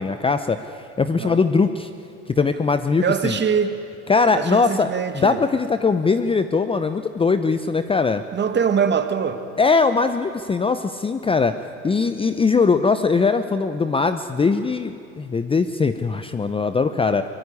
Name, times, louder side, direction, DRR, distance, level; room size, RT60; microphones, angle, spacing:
voice 1, 0.0-1.9 2.3-3.4 4.1-4.9 5.1-8.2 9.6-11.5 11.8-17.2, left 4 dB, 15° left, 10 dB, 0.7 m, -20 dB
voice 2, 3.0-3.8 4.3-5.4 8.3-9.4, right 7 dB, 30° right, 8 dB, 2.0 m, -23 dB
22.0 x 20.5 x 9.8 m, 2.5 s
hypercardioid pair, 95°, 36 cm